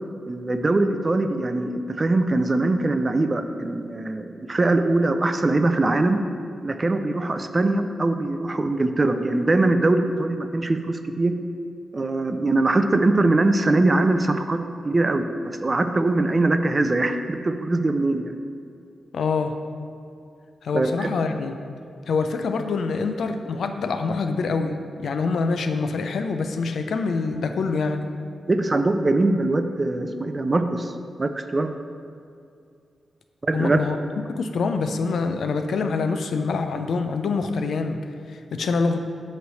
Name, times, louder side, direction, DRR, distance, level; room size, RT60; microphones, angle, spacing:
voice 1, 0.2-6.2 6.6-11.3 11.9-14.6 14.8-15.3 15.6-18.3 20.7-21.1 28.5-30.9 31.2-31.7 33.4-33.8, right 2 dB, 30° right, 8 dB, 0.4 m, -22 dB
voice 2, 19.1-19.6 20.6-21.6 22.1-28.1 33.5-34.0 34.3-38.0 38.3-39.0, left 4 dB, 75° left, 7 dB, 0.5 m, -25 dB
8.1 x 3.2 x 6.3 m, 2.4 s
cardioid pair, 95°, 0 cm